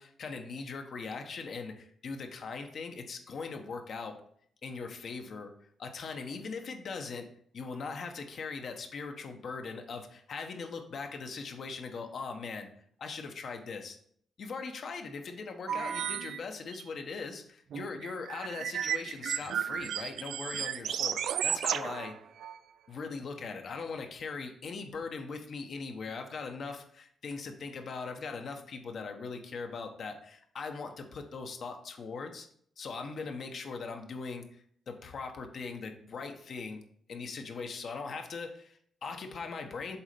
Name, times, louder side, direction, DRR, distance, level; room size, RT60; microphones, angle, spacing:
voice 1, 0.0-4.2 4.6-5.5 5.8-7.3 7.5-12.7 13.0-14.0 14.4-22.2 22.9-32.5 32.8-36.8 37.1-40.0, left 4 dB, 55° left, 5 dB, 1.1 m, -40 dB
sound 1, 15.7-16.4 16.7-16.8 17.7-22.6, right 9 dB, 80° right, 0.3 m, -33 dB
7.1 x 4.1 x 5.2 m, 0.64 s
cardioid pair, 115°, 0 cm